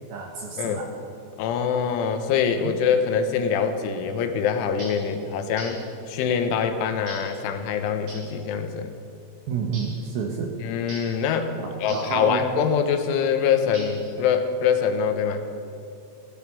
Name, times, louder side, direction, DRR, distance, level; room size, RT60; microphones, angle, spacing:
voice 1, 0.1-0.9 9.5-10.6 11.6-12.6, right 5 dB, 70° right, 2 dB, 2.3 m, -29 dB
voice 2, 1.4-8.9 10.6-11.5 11.8-15.4, left 7 dB, 80° left, 7 dB, 3.4 m, -24 dB
sound 1, 4.8-5.1 5.6-5.9 7.1-7.4 8.1-8.3 9.7-10.0 10.9-11.2 11.9-12.2 13.7-14.2, right 1 dB, 50° right, 6.9 m, -41 dB
16.0 x 14.0 x 6.2 m, 2.6 s
omnidirectional pair, 5.7 m